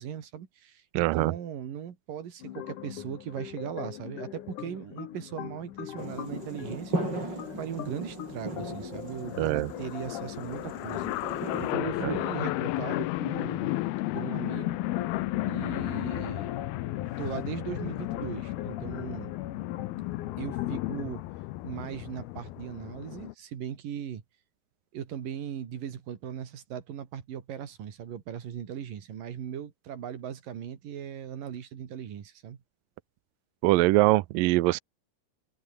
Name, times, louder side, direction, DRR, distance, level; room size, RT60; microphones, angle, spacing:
voice 1, 0.0-11.1 11.6-13.8 14.1-14.8 15.4-16.5 17.2-19.3 20.4-21.2 21.6-24.2 24.9-32.6, right 9 dB, 60° right, 3.9 m, -38 dB
voice 2, 0.9-1.3 9.4-9.7 12.0-12.2 33.6-34.8, right 19 dB, 80° right, 2.1 m, -23 dB
sound 1, 2.4-21.1, left 11 dB, 60° left, 2.7 m, -42 dB
sound 2, 6.0-11.7, right 2 dB, 25° right, 8.6 m, -37 dB
sound 3, 7.2-7.3 7.5-23.3, left 18 dB, 80° left, 2.6 m, -34 dB
omnidirectional pair, 4.5 m